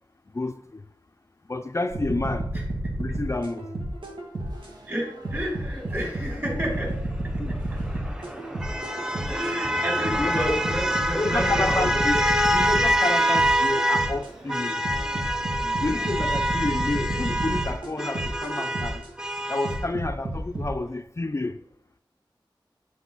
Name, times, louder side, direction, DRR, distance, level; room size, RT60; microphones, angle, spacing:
voice 1, 0.3-0.8 1.5-2.5 3.0-3.7 7.4-7.6 10.2-10.6 11.2-14.8 15.8-19.0 19.5-21.6, left 2 dB, 35° left, 0.4 m, -29 dB
sound 1, 1.9-4.7 5.2-9.5 10.0-14.3 14.8-19.1 19.6-20.7, right 1 dB, 85° right, 2.0 m, -31 dB
voice 2, 2.5-2.9 4.9-7.0 7.2-7.8 8.4-8.5 9.3-12.0 15.6-16.4, equal, 25° right, 3.6 m, -32 dB
sound 2, 4.2-17.8, right 1 dB, 55° right, 2.0 m, -48 dB
sound 3, 7.5-14.2 14.5-19.9, equal, 10° right, 0.7 m, -26 dB
8.2 x 8.1 x 4.0 m
wide cardioid pair, 70°, 9 cm